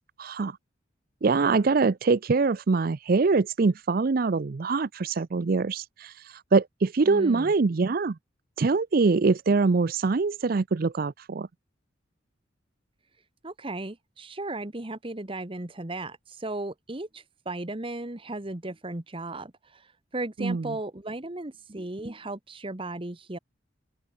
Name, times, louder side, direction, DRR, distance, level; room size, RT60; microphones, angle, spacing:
voice 1, 0.2-0.6 1.2-8.2 8.6-11.5 20.4-20.7, right 4 dB, 50° right, 0.5 m, -24 dB
voice 2, 7.0-7.5 13.4-19.9 20.1-23.4, right 2 dB, 25° right, 1.2 m, -36 dB
head